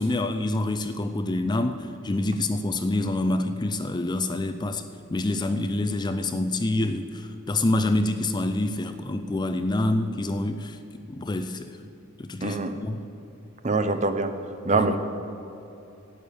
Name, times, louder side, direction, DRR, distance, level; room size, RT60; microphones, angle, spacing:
voice 1, 0.0-4.8 5.1-10.8 11.1-11.7 12.2-13.0 14.7-14.9, left 2 dB, 20° left, 8 dB, 0.4 m, -27 dB
voice 2, 12.4-12.7 13.6-14.3 14.6-15.0, right 3 dB, 35° right, 8 dB, 0.7 m, -24 dB
11.0 x 7.0 x 9.1 m, 3.0 s
head